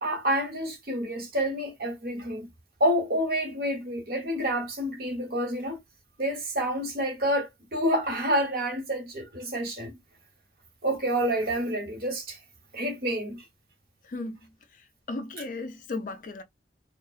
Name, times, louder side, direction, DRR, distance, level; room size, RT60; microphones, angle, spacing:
voice 1, 0.0-2.5 2.8-5.8 6.2-9.9 10.8-12.4 12.7-13.4, equal, 55° right, 0.9 m, -28 dB
voice 2, 14.0-14.5 15.1-16.4, left 3 dB, 50° left, 0.4 m, -35 dB
2.5 x 2.0 x 2.3 m
head